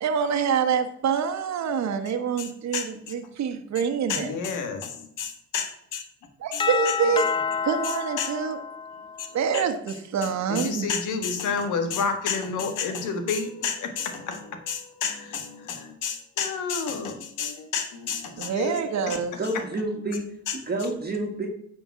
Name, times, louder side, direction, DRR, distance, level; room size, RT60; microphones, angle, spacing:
voice 1, 0.0-4.3 6.4-7.3 7.6-8.6 9.3-10.9 18.4-19.4, right 6 dB, 65° right, 6 dB, 1.2 m, -26 dB
voice 2, 2.4-3.1 4.1-6.0 6.5-7.3 7.8-8.3 9.2-9.3 9.5-9.6 10.5-19.2 19.4-19.6 20.5-20.6, left 6 dB, 90° left, 7 dB, 1.7 m, -30 dB
Doorbell, 6.6-9.4, left 6 dB, 20° left, 0.3 m, -29 dB
voice 3, 19.4-20.3 20.5-21.5, right 2 dB, 30° right, 1 dB, 1.8 m, -29 dB
9.3 x 5.3 x 6.0 m, 0.71 s
cardioid pair, 90°, 30 cm